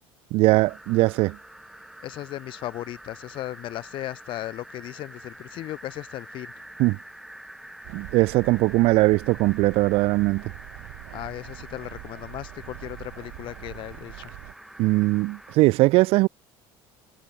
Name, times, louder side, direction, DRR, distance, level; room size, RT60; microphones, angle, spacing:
voice 1, 0.3-1.4 6.8-7.0 7.9-10.4 14.8-16.3, right 21 dB, 60° right, 0.5 m, -20 dB
sound 1, 0.7-15.6, right 1 dB, 5° right, 2.3 m, -46 dB
voice 2, 2.0-6.5 11.1-14.3, left 15 dB, 50° left, 2.6 m, -36 dB
sound 2, 7.8-14.5, right 28 dB, 80° right, 4.4 m, -43 dB
cardioid pair, 165°, 11 cm